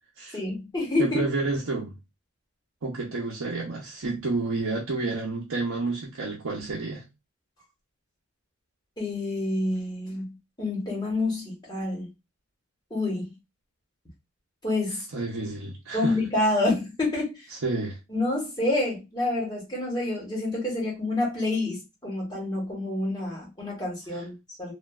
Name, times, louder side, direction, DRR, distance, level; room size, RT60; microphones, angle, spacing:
voice 1, 0.3-1.2 9.0-12.1 12.9-13.3 14.6-15.0 15.9-17.4 18.1-24.7, left 2 dB, 20° left, 1.2 m, -28 dB
voice 2, 1.0-1.9 2.8-7.0 15.1-16.2 17.5-18.0 24.1-24.2, right 3 dB, 70° right, 0.6 m, -30 dB
3.0 x 2.3 x 2.3 m
head